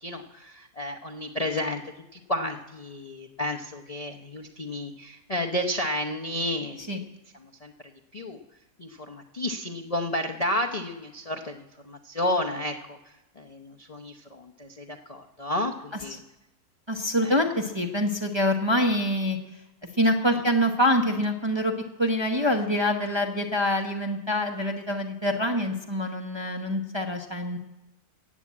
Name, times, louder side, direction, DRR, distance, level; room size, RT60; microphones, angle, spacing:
voice 1, 0.0-1.8 2.1-7.1 7.4-7.7 8.1-8.4 8.8-16.2 17.2-17.4, left 1 dB, 35° left, 3 dB, 0.6 m, -32 dB
voice 2, 16.9-19.4 20.0-21.7 22.0-27.6, left 1 dB, 20° right, 2 dB, 0.8 m, -25 dB
14.5 x 8.6 x 8.5 m, 1.0 s
omnidirectional pair, 1.7 m